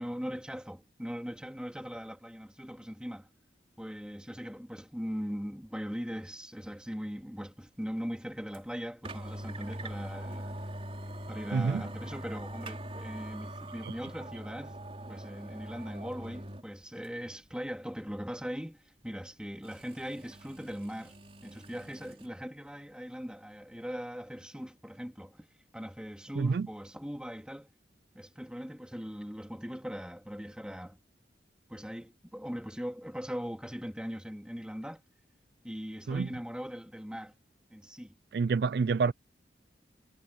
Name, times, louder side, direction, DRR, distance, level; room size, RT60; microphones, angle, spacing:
voice 1, 0.0-3.3 3.8-10.6 11.3-14.8 15.1-21.2 21.4-25.5 25.7-27.7 28.1-31.0 31.7-35.0 35.6-37.3 37.7-38.2, equal, 5° right, 3.2 m, -40 dB
sound 1, 8.5-8.6 9.0-16.7 17.0-17.1 19.6-22.3, right 1 dB, 35° right, 4.1 m, -42 dB
voice 2, 11.5-11.8 13.8-13.9 26.4-26.7 36.1-36.3 38.3-39.1, right 5 dB, 65° right, 0.3 m, -28 dB
head